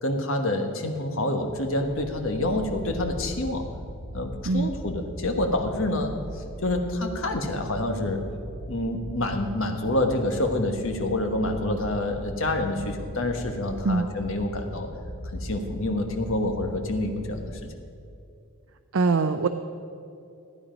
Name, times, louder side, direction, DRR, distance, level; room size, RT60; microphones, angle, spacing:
voice 1, 0.0-3.7 4.1-8.2 8.7-14.9 15.3-17.5, left 1 dB, 65° left, 5 dB, 1.3 m, -27 dB
sound 1, 1.7-17.6, equal, 45° left, 1.5 m, -39 dB
voice 2, 18.9-19.5, right 4 dB, 70° right, 8 dB, 0.5 m, -22 dB
15.0 x 9.8 x 5.1 m, 2.6 s
head